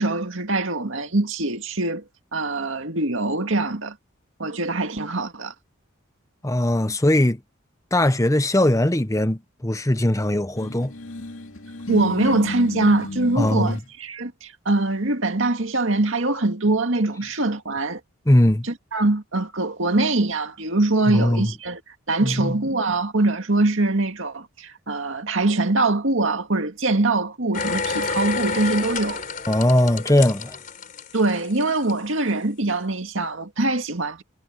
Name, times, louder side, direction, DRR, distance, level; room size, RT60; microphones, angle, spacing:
voice 1, 0.0-2.0 2.3-4.0 4.4-5.5 11.9-18.0 18.6-21.8 22.1-29.2 31.1-34.2, right 2 dB, 70° right, 2.1 m, -23 dB
voice 2, 6.4-7.4 7.9-10.9 13.4-13.8 18.3-18.6 21.1-21.5 22.2-22.5 29.5-30.6, left 1 dB, 15° left, 0.9 m, -20 dB
sound 1, 10.6-13.8, left 2 dB, 75° left, 2.4 m, -33 dB
sound 2, 27.5-31.9 32.3-32.4, left 4 dB, 40° left, 4.6 m, -29 dB
head